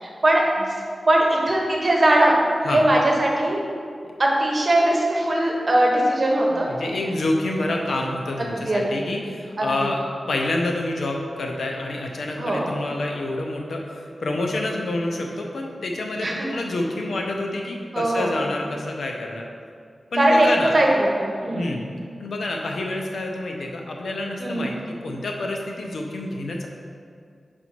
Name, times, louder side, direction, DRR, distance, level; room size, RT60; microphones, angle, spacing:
voice 1, 0.0-0.7 1.1-2.3 2.7-3.6 4.2-6.7 8.6-9.1 9.6-9.9 12.4-12.7 16.2-16.3 17.9-18.4 20.2-20.5 20.7-20.9 21.2-21.7 24.4-24.7, right 1 dB, 40° right, -2 dB, 1.0 m, -20 dB
voice 2, 6.5-10.0 10.3-19.5 20.1-20.7 21.5-21.9 22.2-24.8 25.0-26.7, left 2 dB, 90° left, 1 dB, 0.7 m, -28 dB
5.2 x 4.3 x 4.5 m, 2.3 s
wide cardioid pair, 120°, 0 cm